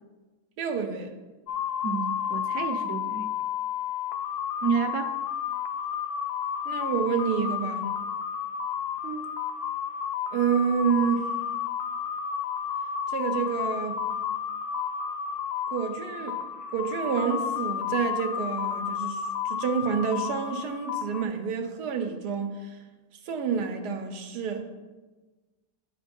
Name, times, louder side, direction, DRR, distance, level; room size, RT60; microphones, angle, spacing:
voice 1, 0.6-1.1 6.6-7.9 10.3-11.3 13.1-14.0 15.7-16.4 16.7-22.8 23.2-24.7, right 6 dB, 85° right, 5 dB, 1.3 m, -28 dB
sound 1, 1.5-21.2, left 8 dB, 75° left, 1.1 m, -31 dB
voice 2, 1.8-3.3 4.6-5.1 9.0-9.3, right 7 dB, 70° right, 6 dB, 1.0 m, -30 dB
9.5 x 3.6 x 5.2 m, 1.2 s
omnidirectional pair, 1.7 m